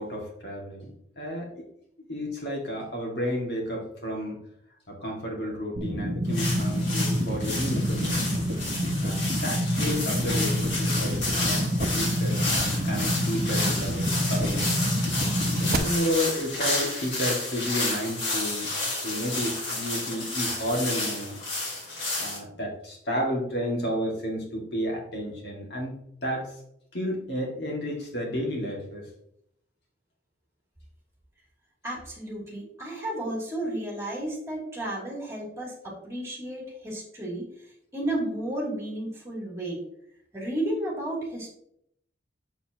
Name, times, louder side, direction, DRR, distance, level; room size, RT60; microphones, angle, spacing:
voice 1, 0.0-1.6 2.1-4.4 4.9-8.5 9.0-11.7 11.9-14.8 15.6-18.7 19.0-21.4 22.2-26.6 26.9-29.1, equal, 65° left, -1 dB, 2.2 m, -32 dB
sound 1, 5.8-15.8, equal, 55° right, 0.8 m, -27 dB
sound 2, 6.3-22.4, left 2 dB, 85° left, 3.0 m, -31 dB
voice 2, 31.8-37.4 37.9-39.8 40.3-41.5, right 1 dB, 15° right, -4 dB, 2.9 m, -32 dB
7.2 x 6.9 x 3.0 m, 0.73 s
head